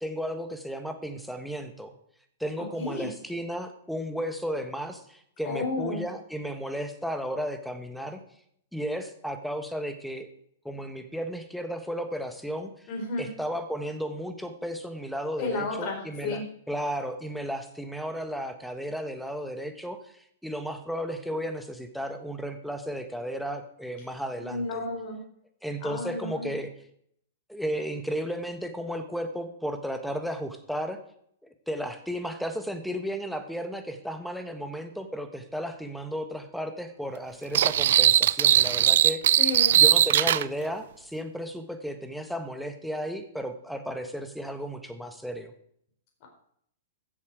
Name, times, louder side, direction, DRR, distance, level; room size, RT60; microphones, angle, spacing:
voice 1, 0.0-1.9 2.4-8.2 8.7-10.3 10.6-12.9 13.2-16.4 16.7-24.8 25.6-26.7 27.5-31.0 31.4-39.2 39.8-45.5, equal, ahead, 7 dB, 1.4 m, -34 dB
voice 2, 2.6-3.1 5.4-6.0 12.9-13.3 15.4-16.4 24.5-25.2 25.8-26.5 39.4-39.8 46.2-46.3, left 3 dB, 45° left, 1 dB, 4.2 m, -32 dB
sound 1, 37.5-40.4, right 11 dB, 65° right, 0.4 m, -20 dB
15.0 x 7.3 x 4.9 m, 0.68 s
hypercardioid pair, 125°, 0 cm